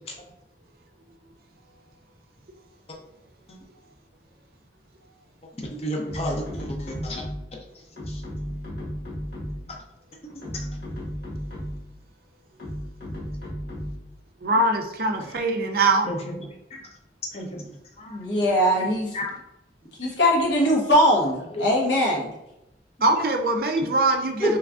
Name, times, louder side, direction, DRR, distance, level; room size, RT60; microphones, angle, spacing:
voice 1, 5.6-7.6 8.1-8.2 9.6-9.8 10.2-10.9 15.2-15.4 16.0-16.9 17.3-18.2 18.8-19.3 21.5-21.8 23.1-23.2 23.8-23.9, left 1 dB, 35° left, 1 dB, 0.6 m, -34 dB
sound 1, 6.1-7.6 8.0-9.8 10.3-11.9 12.6-14.1, equal, 65° left, 1.4 m, -34 dB
voice 2, 14.4-16.1 23.0-24.6, right 2 dB, 55° right, 4 dB, 0.4 m, -22 dB
voice 3, 18.1-19.1 20.0-22.3 24.4-24.5, equal, 80° left, -2 dB, 1.0 m, -21 dB
3.5 x 3.1 x 2.4 m, 0.90 s
head